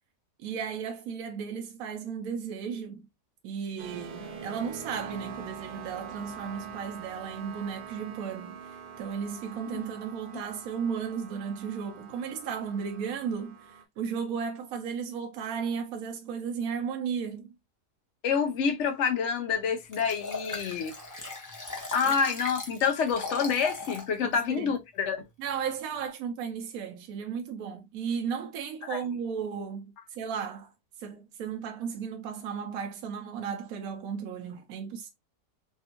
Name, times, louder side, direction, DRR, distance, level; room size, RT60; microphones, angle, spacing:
voice 1, 0.4-3.1 3.4-17.5 22.0-22.1 24.2-24.8 25.4-30.7 31.0-35.1, right 7 dB, 70° right, 0.9 m, -35 dB
sound 1, 3.8-13.8, right 6 dB, 85° right, 0.4 m, -44 dB
voice 2, 18.2-20.9 21.9-25.2 28.9-29.0, left 6 dB, 70° left, 0.6 m, -27 dB
Liquid, 19.9-24.1 24.6-24.7, left 3 dB, 25° left, 0.3 m, -38 dB
3.4 x 2.3 x 2.7 m
omnidirectional pair, 1.7 m